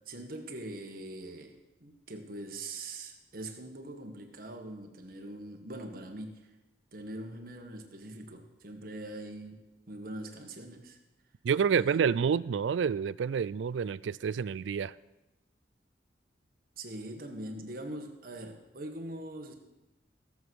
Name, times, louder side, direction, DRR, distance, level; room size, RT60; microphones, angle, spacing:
voice 1, 0.1-6.5 6.9-11.0 11.7-12.0 16.8-19.5, right 1 dB, 55° right, 4 dB, 1.6 m, -42 dB
voice 2, 11.4-14.9, right 6 dB, 90° right, 20 dB, 0.4 m, -28 dB
17.0 x 7.1 x 6.3 m, 1.0 s
head